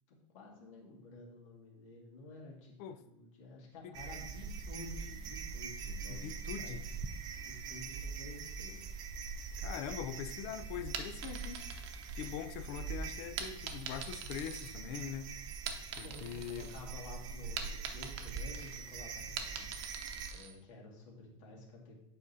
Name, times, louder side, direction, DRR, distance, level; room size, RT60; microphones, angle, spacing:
voice 1, 0.1-2.7 3.0-6.9 7.4-9.0 15.9-19.7 20.3-22.0, left 2 dB, 70° left, -1 dB, 2.1 m, -52 dB
sound 1, 3.9-20.3, right 5 dB, 25° right, 0.3 m, -43 dB
voice 2, 6.1-6.8 9.6-11.7 12.2-15.3 16.0-16.7, left 9 dB, 45° left, 11 dB, 0.4 m, -42 dB
sound 2, 10.9-12.7 13.4-15.2 15.5-16.8 17.1-20.6, right 7 dB, 55° right, 0.8 m, -44 dB
7.6 x 5.0 x 2.8 m, 0.79 s
supercardioid pair, 155°, 17 cm